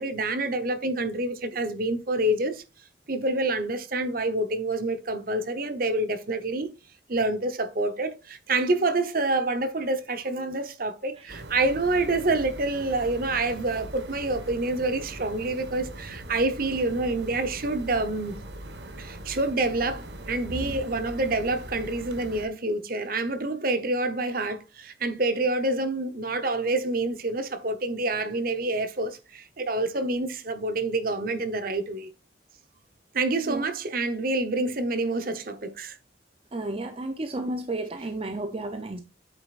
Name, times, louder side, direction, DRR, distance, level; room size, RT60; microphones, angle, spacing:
voice 1, 0.0-2.6 3.1-6.7 7.1-18.5 19.0-32.1 33.1-35.9, right 2 dB, 50° right, 1.0 m, -27 dB
sound 1, 11.3-22.5, right 1 dB, 70° right, 1.3 m, -41 dB
voice 2, 36.5-39.0, right 2 dB, 30° right, 0.6 m, -32 dB
8.3 x 6.7 x 2.5 m
head